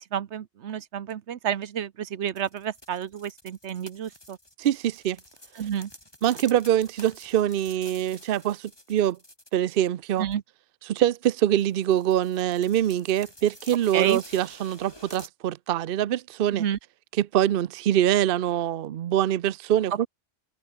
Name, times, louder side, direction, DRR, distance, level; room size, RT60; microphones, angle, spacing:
voice 1, 0.0-4.4 5.6-5.9 10.2-10.4 13.9-14.2 16.5-16.8, right 9 dB, 85° right, 1.2 m, -30 dB
sound 1, 2.4-9.9 10.2-10.3 11.2-11.3 11.6-15.3, left 1 dB, 20° left, 4.3 m, -49 dB
voice 2, 4.6-5.2 6.2-9.2 9.5-10.3 10.9-16.6 17.2-20.1, right 11 dB, 60° right, 0.7 m, -24 dB
open air
omnidirectional pair, 1.1 m